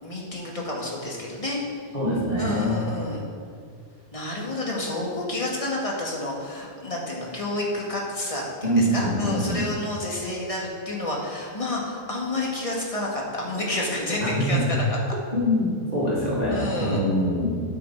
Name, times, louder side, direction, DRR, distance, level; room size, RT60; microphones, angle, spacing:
voice 1, 0.0-1.8 2.4-3.2 4.1-14.9 16.5-17.0, left 2 dB, 25° left, -3 dB, 1.3 m, -29 dB
voice 2, 1.9-2.8 8.6-9.6 14.2-14.7 15.3-17.6, equal, 30° right, -6 dB, 1.7 m, -24 dB
8.4 x 6.2 x 4.2 m, 2.1 s
omnidirectional pair, 1.5 m